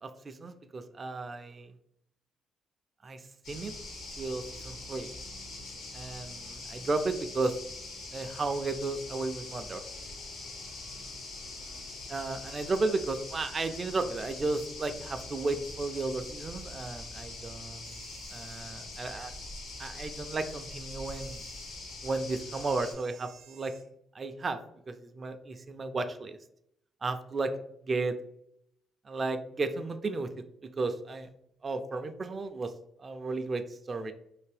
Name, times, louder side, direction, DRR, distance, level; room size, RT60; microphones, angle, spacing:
voice 1, 0.0-1.7 3.0-3.7 4.2-5.1 5.9-7.5 8.1-9.8 12.1-18.0 18.3-19.3 19.8-21.4 22.0-23.7 24.1-24.6 24.9-26.4 27.0-27.5 27.9-28.2 29.1-30.3 30.6-31.3 31.6-32.7 33.0-34.1, right 3 dB, 35° right, 7 dB, 0.3 m, -34 dB
sound 1, 3.4-22.9, left 2 dB, 85° left, 1.0 m, -43 dB
sound 2, 17.8-18.7 21.1-21.8 22.5-23.9, right 6 dB, 75° right, 0.7 m, -55 dB
3.4 x 2.6 x 3.3 m, 0.74 s
cardioid pair, 90°, 0 cm